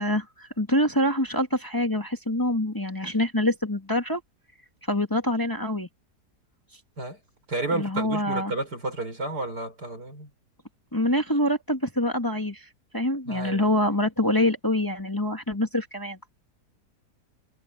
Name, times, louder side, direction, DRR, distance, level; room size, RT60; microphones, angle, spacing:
voice 1, 0.0-4.2 4.9-5.9 7.7-8.5 10.9-12.7 12.9-16.2, left 1 dB, 10° left, 2.2 m, -25 dB
voice 2, 7.5-10.3 13.3-13.7, right 2 dB, 80° right, 6.5 m, -31 dB
omnidirectional pair, 1.7 m